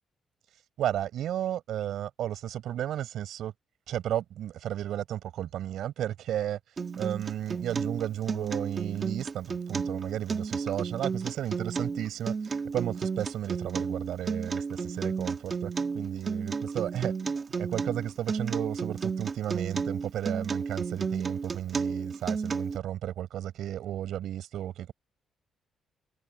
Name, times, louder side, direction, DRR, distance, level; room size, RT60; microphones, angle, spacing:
voice 1, 0.8-3.5 3.9-17.1 17.6-24.9, right 11 dB, 75° right, 7.8 m, -33 dB
Acoustic guitar, 6.8-22.8, right 5 dB, 30° right, 1.6 m, -32 dB
cardioid pair, 150°, 0 cm